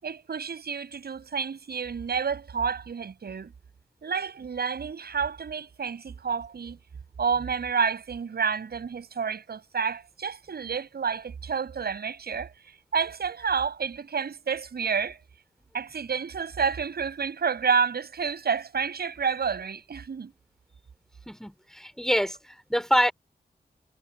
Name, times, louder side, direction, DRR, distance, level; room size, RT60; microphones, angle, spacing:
voice 1, 0.0-3.5 4.0-6.8 7.2-15.2 15.7-20.3, right 6 dB, 85° right, 7.4 m, -29 dB
voice 2, 21.3-23.1, equal, 5° left, 4.4 m, -26 dB
wide cardioid pair, 75°, 16 cm